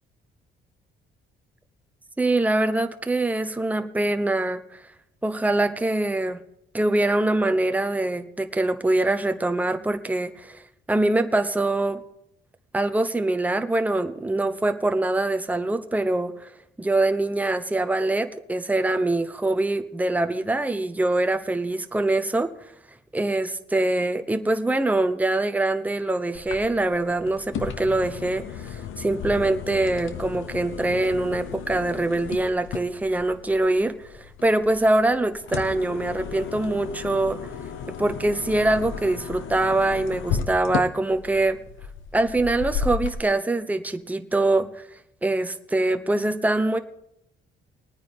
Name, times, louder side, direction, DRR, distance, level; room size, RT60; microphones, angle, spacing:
voice 1, 2.2-4.8 5.2-6.4 6.7-10.6 10.9-12.0 12.7-16.5 16.8-22.5 23.1-37.4 38.0-41.6 42.1-44.7 45.2-46.8, right 2 dB, 5° right, 7 dB, 0.9 m, -24 dB
sound 1, 26.3-43.2, left 7 dB, 80° left, 0.9 m, -34 dB
21.5 x 9.5 x 3.5 m, 0.78 s
cardioid pair, 90°, 20 cm